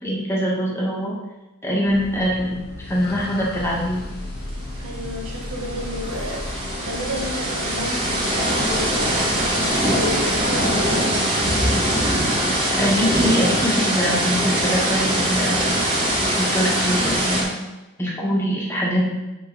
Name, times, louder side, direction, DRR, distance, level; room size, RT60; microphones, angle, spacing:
voice 1, 0.0-1.2 1.6-4.0 11.8-11.9 12.8-15.8 16.4-17.6 18.0-19.1, equal, 10° left, -5 dB, 1.6 m, -23 dB
sound 1, 1.9-9.8, left 2 dB, 45° left, 0.7 m, -38 dB
sound 2, 3.5-11.0, equal, 90° left, 1.9 m, -37 dB
sound 3, 4.5-4.6 4.8-17.4, right 1 dB, 25° right, 1.9 m, -22 dB
voice 2, 4.8-11.2, left 1 dB, 80° right, 0 dB, 1.5 m, -32 dB
7.4 x 5.3 x 4.0 m, 1.0 s
head